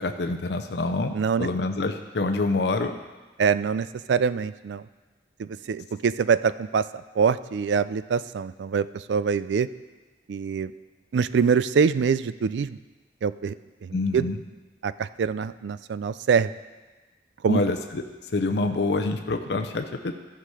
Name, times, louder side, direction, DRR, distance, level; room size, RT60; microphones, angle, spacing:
voice 1, 0.0-3.0 13.9-14.4 17.5-18.0 18.3-20.2, left 3 dB, 70° left, 5 dB, 0.6 m, -26 dB
voice 2, 1.1-1.5 3.4-4.9 5.4-6.9 7.2-9.7 10.3-10.7 11.1-12.8 13.2-14.3 14.8-16.5 17.4-17.6, right 6 dB, 80° right, 15 dB, 0.4 m, -24 dB
14.5 x 5.9 x 4.9 m, 1.3 s
head